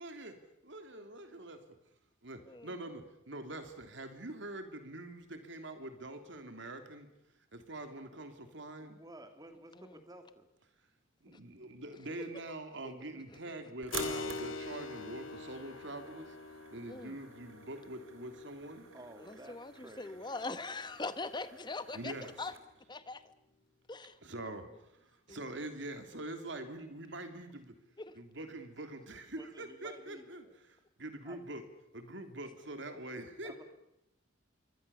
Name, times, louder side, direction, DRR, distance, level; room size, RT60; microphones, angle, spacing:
voice 1, 0.0-0.3 0.7-1.6 2.2-7.1 7.5-9.0 11.2-16.4 16.7-18.9 21.9-22.5 24.2-27.7 28.1-31.6 31.9-33.6, right 1 dB, 65° right, 7 dB, 3.2 m, -44 dB
voice 2, 8.8-10.5 18.9-20.2 29.4-30.6 31.2-31.4 33.4-33.6, right 1 dB, 20° right, 6 dB, 2.9 m, -53 dB
sound 1, 13.8-22.6, right 6 dB, 80° right, 3.5 m, -50 dB
Keyboard (musical), 13.9-22.1, left 3 dB, 80° left, 1.9 m, -45 dB
voice 3, 16.9-17.2 19.2-22.5 22.9-23.2 23.9-24.5 25.3-25.7 28.0-28.1, left 3 dB, 20° left, 12 dB, 1.2 m, -42 dB
27.5 x 23.5 x 7.1 m, 0.83 s
head